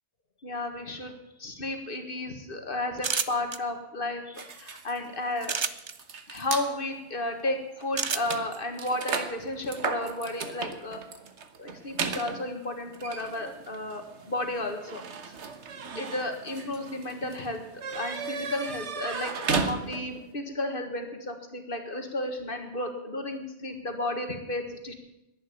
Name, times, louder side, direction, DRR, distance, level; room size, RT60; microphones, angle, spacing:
voice 1, 0.4-5.6 6.3-11.0 11.6-15.4 16.0-24.9, left 2 dB, 50° left, 5 dB, 1.8 m, -33 dB
sound 1, 3.0-3.6 5.4-5.9 8.0-8.4, right 5 dB, 40° right, 0.4 m, -28 dB
sound 2, 4.4-6.7 7.4-7.5 7.8-20.3, right 5 dB, 70° right, 1.4 m, -36 dB
11.0 x 10.5 x 8.5 m, 0.89 s
omnidirectional pair, 1.2 m